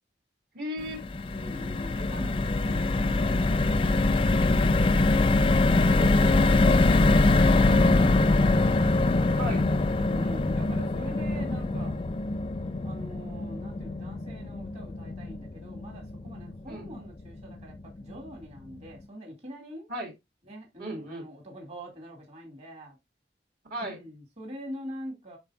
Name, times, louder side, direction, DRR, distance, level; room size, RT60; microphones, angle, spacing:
voice 1, 0.5-1.0 5.9-6.5 9.4-9.7 16.7-16.9 19.9-20.1 20.8-21.2 23.7-24.0, equal, 55° right, 2.3 m, -35 dB
sound 1, 0.8-17.1 17.5-17.6 17.9-18.1, left 2 dB, 30° left, 0.4 m, -24 dB
voice 2, 1.3-5.3 6.3-8.6 9.9-12.0 12.8-19.9 20.4-23.0 23.8-25.4, equal, 35° right, 2.4 m, -44 dB
11.5 x 4.1 x 2.5 m
head